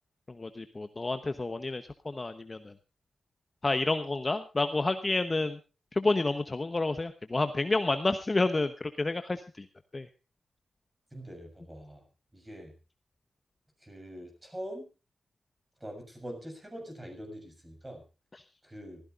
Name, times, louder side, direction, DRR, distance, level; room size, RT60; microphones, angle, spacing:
voice 1, 0.3-2.7 3.6-5.6 5.9-9.7 9.9-10.1 18.3-18.4, left 2 dB, 25° left, 9 dB, 0.9 m, -30 dB
voice 2, 11.1-12.0 12.3-12.7 13.8-14.9 15.8-18.0 18.6-19.0, equal, 15° right, 4 dB, 6.9 m, -43 dB
25.0 x 15.5 x 2.5 m, 0.32 s
wide cardioid pair, 135°, 0 cm